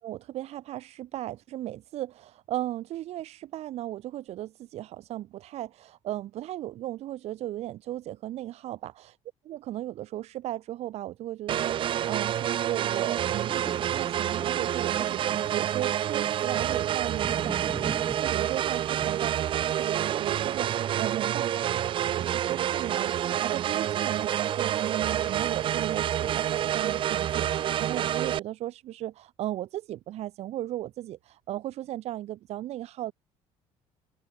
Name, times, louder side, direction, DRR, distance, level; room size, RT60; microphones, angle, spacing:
voice 1, 0.0-9.2 9.5-21.5 22.0-33.1, right 14 dB, 60° right, 5.3 m, -36 dB
sound 1, 11.5-28.4, right 11 dB, 45° right, 0.9 m, -28 dB
sound 2, 13.1-21.3 21.8-21.9, right 3 dB, 10° right, 4.0 m, -44 dB
cardioid pair, 145°, 12 cm